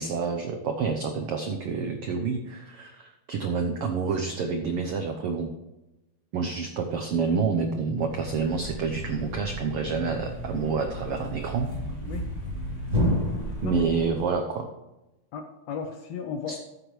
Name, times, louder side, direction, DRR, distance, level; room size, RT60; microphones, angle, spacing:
voice 1, 0.0-5.5 6.3-11.7 13.6-14.7 16.5-16.6, right 5 dB, 80° right, 5 dB, 1.3 m, -28 dB
Thump thud, 8.0-14.2, left 1 dB, 10° right, 3.2 m, -32 dB
voice 2, 15.3-16.6, left 6 dB, 75° left, 6 dB, 1.6 m, -35 dB
13.5 x 8.2 x 3.2 m, 0.99 s
omnidirectional pair, 3.7 m